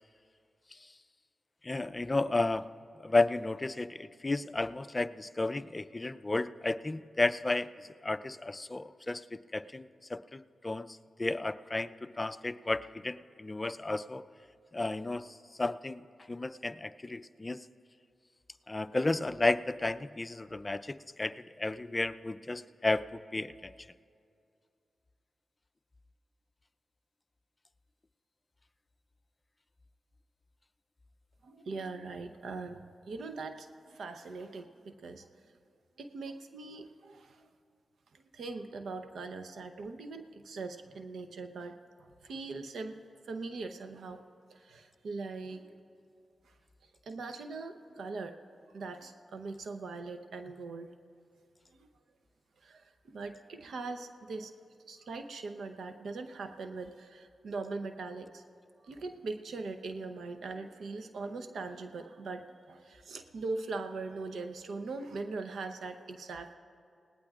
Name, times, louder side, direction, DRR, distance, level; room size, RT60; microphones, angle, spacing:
voice 1, 1.6-2.7 3.0-7.7 8.0-14.2 14.7-16.0 16.3-17.6 18.7-23.7, left 2 dB, 30° left, 12 dB, 0.5 m, -33 dB
voice 2, 31.4-35.3 36.0-37.4 38.1-43.0 43.3-44.2 44.5-45.7 47.1-48.4 48.7-50.9 52.6-54.5 54.9-58.4 58.8-66.5, right 3 dB, 80° right, 7 dB, 0.8 m, -41 dB
29.0 x 18.5 x 2.4 m, 2.4 s
supercardioid pair, 40°, 0 cm